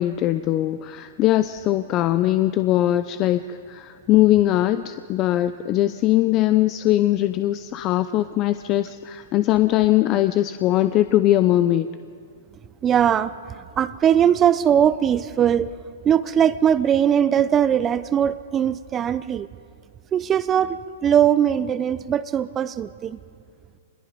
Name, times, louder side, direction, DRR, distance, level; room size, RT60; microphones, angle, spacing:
voice 1, 0.0-11.9, left 14 dB, 35° left, 12 dB, 0.6 m, -20 dB
voice 2, 12.8-15.7 16.0-19.5 20.1-23.2, right 9 dB, 25° right, 15 dB, 0.8 m, -20 dB
26.5 x 21.0 x 5.3 m, 2.2 s
hypercardioid pair, 120°, 0 cm